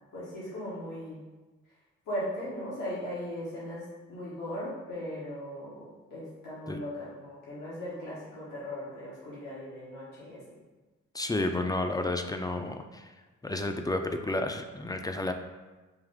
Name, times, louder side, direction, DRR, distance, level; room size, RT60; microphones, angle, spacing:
voice 1, 0.1-1.2 2.0-10.4, equal, 90° left, -8 dB, 1.2 m, -38 dB
voice 2, 11.1-13.1 13.4-15.3, left 2 dB, 15° left, 6 dB, 0.3 m, -31 dB
3.6 x 2.6 x 3.5 m, 1.2 s
supercardioid pair, 50°, 30 cm